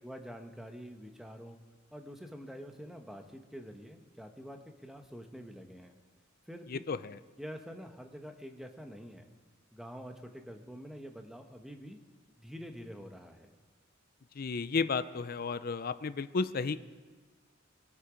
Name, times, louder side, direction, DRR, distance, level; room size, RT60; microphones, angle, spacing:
voice 1, 0.0-1.6 1.9-6.0 6.5-6.8 7.4-9.2 9.7-12.0 12.4-13.5, equal, ahead, 5 dB, 1.0 m, -46 dB
voice 2, 6.7-7.2 14.4-16.8, left 4 dB, 45° left, 13 dB, 0.5 m, -33 dB
21.5 x 8.3 x 5.1 m, 1.3 s
head